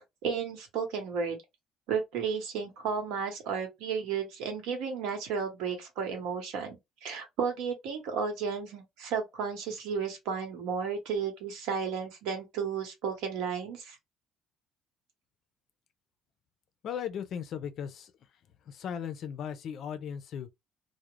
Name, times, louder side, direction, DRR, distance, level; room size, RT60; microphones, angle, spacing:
voice 1, 0.2-1.4 1.9-14.0, right 6 dB, 90° right, 1.0 m, -33 dB
voice 2, 16.8-18.1 18.7-20.5, left 8 dB, 45° left, 0.4 m, -37 dB
2.3 x 2.0 x 2.9 m
cardioid pair, 175°, 0 cm